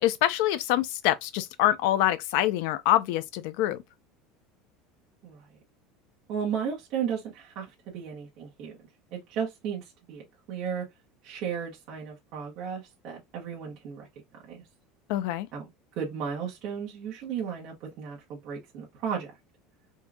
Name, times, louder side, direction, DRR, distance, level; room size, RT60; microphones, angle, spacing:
voice 1, 0.0-3.8 15.1-15.5, left 14 dB, 60° left, 0.6 m, -25 dB
voice 2, 6.3-8.7 9.1-10.9 11.2-14.1 14.4-14.6 15.5-15.7 16.0-19.3, right 7 dB, 45° right, 1.7 m, -34 dB
4.5 x 2.8 x 2.3 m
cardioid pair, 175°, 0 cm